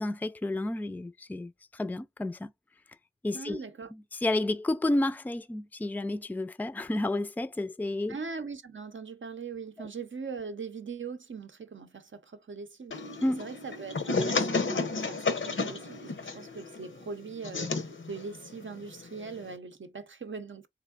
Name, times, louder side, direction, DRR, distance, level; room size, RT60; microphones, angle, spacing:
voice 1, 0.0-2.5 3.2-3.6 4.1-8.2 9.8-9.9 13.2-13.4, left 1 dB, 10° left, 0.3 m, -31 dB
voice 2, 3.3-3.9 8.1-13.0 13.4-20.7, right 5 dB, 80° right, 0.6 m, -41 dB
sound 1, 12.9-19.6, left 3 dB, 85° left, 0.6 m, -32 dB
3.5 x 3.1 x 2.3 m
wide cardioid pair, 45°, 20 cm